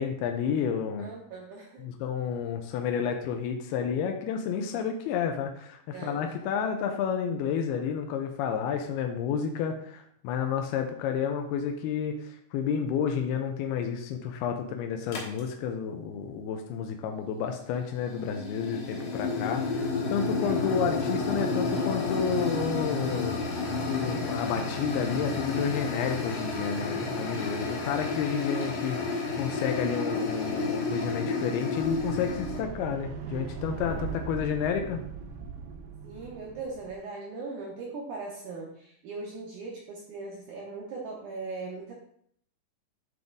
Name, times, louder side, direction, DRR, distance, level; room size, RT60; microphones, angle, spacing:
voice 1, 0.0-1.1 1.8-35.0, left 7 dB, 85° left, 4 dB, 2.6 m, -31 dB
voice 2, 1.0-1.8 5.9-6.3 20.4-20.7 36.0-41.9, right 3 dB, 70° right, -3 dB, 2.0 m, -39 dB
sound 1, 15.1-15.4 17.7-32.6, left 3 dB, 65° left, 1.6 m, -31 dB
sound 2, 31.7-37.0, right 6 dB, 85° right, 2.8 m, -39 dB
9.4 x 3.5 x 3.9 m, 0.66 s
omnidirectional pair, 4.5 m